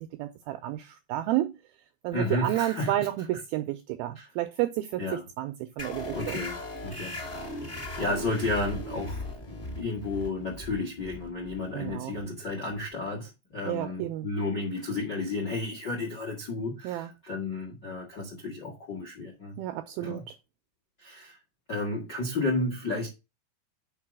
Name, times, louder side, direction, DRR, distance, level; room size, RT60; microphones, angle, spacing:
voice 1, 0.0-1.6 2.0-6.4 11.7-12.2 13.7-14.3 16.8-17.1 19.6-20.4, right 14 dB, 85° right, 2.1 m, -31 dB
voice 2, 2.1-3.1 4.1-4.3 5.0-5.2 6.1-7.7 8.0-19.6 20.0-20.2 21.0-21.4 21.7-23.1, left 2 dB, 55° left, 1.1 m, -32 dB
sound 1, 5.8-12.9, left 1 dB, 35° left, 1.0 m, -38 dB
5.9 x 4.5 x 6.1 m
omnidirectional pair, 4.9 m